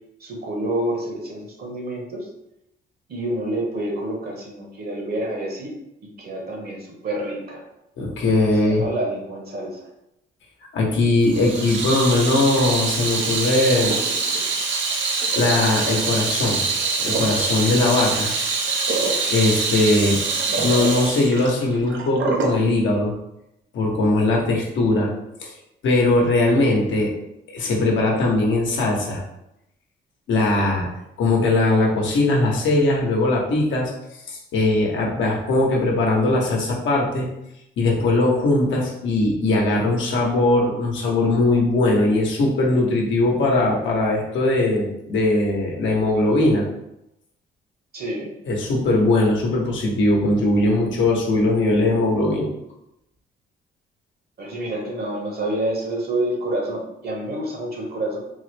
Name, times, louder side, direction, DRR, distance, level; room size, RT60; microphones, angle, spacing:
voice 1, 0.2-2.2 3.1-5.7 6.2-6.8 7.0-7.6 8.6-9.8 47.9-48.3 54.4-58.2, right 1 dB, 50° right, 0 dB, 1.1 m, -28 dB
voice 2, 8.0-8.8 10.7-14.0 15.3-16.6 17.0-18.3 19.3-20.2 20.5-23.1 23.7-25.1 25.4-25.5 25.8-27.1 27.5-29.2 30.3-30.9 31.2-33.9 34.3-37.3 37.8-46.6 48.5-52.5, left 2 dB, 70° left, -2 dB, 0.9 m, -20 dB
Water tap faucet / Sink (filling or washing), 11.3-22.6, right 4 dB, 70° right, 0.6 m, -24 dB
3.8 x 2.0 x 3.2 m, 0.85 s
cardioid pair, 90°, 20 cm